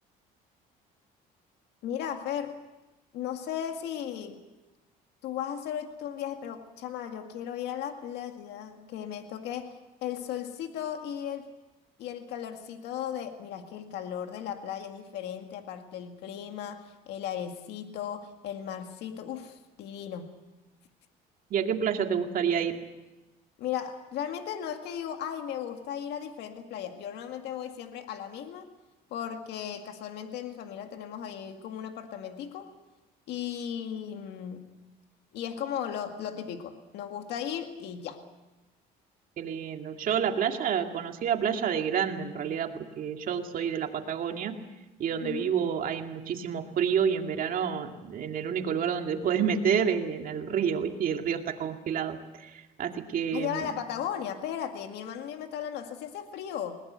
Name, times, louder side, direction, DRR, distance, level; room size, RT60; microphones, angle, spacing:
voice 1, 1.8-2.6 3.1-4.4 5.2-11.5 12.0-20.3 23.6-28.7 29.1-32.7 33.3-34.7 35.3-38.2 45.2-45.5 53.3-56.8, left 9 dB, 80° left, 6 dB, 2.0 m, -36 dB
voice 2, 21.5-22.7 39.4-44.6 45.0-53.7, right 7 dB, 55° right, 4 dB, 2.3 m, -29 dB
21.0 x 19.5 x 8.1 m, 1.1 s
cardioid pair, 110°, 17 cm